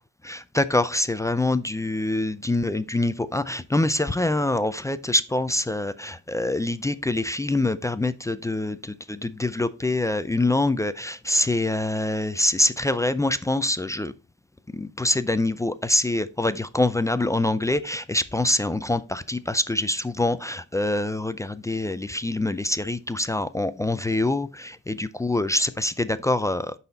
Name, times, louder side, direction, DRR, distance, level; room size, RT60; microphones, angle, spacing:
voice 1, 0.2-14.1 14.7-26.7, left 2 dB, 10° left, 0.4 m, -25 dB
10.0 x 4.1 x 4.0 m
cardioid pair, 90°, 30 cm